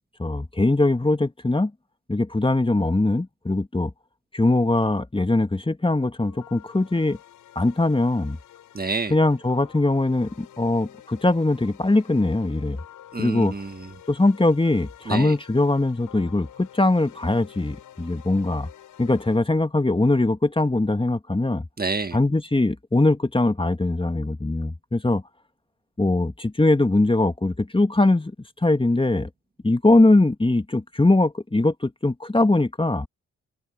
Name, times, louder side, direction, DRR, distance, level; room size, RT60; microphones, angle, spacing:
voice 1, 0.2-1.7 2.1-3.9 4.3-7.2 7.5-8.4 9.1-12.8 13.2-13.5 14.1-18.7 19.0-21.6 22.1-25.2 26.0-28.3 28.6-29.3 29.6-33.1, left 2 dB, 15° left, 1.8 m, -21 dB
sound 1, 6.2-19.4, left 11 dB, 85° left, 6.3 m, -49 dB
voice 2, 8.7-9.1 13.1-13.9 15.0-15.3 21.8-22.2, right 3 dB, 30° right, 1.8 m, -28 dB
supercardioid pair, 45°, 31 cm